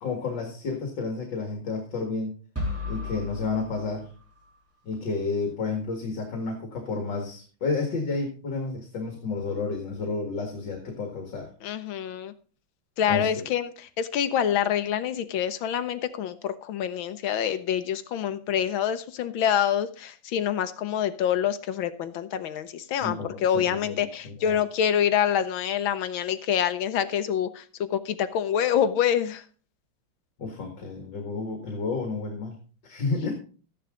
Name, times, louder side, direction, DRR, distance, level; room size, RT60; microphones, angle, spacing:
voice 1, 0.0-2.3 2.9-4.1 4.8-11.5 13.1-13.5 23.0-24.6 30.4-32.6 32.8-33.3, left 4 dB, 60° left, 2 dB, 2.6 m, -31 dB
sound 1, 2.6-4.6, left 3 dB, 5° right, 3.4 m, -35 dB
voice 2, 11.6-12.3 13.0-29.4, left 9 dB, 80° left, 11 dB, 1.6 m, -26 dB
14.0 x 10.5 x 3.8 m, 0.39 s
omnidirectional pair, 2.2 m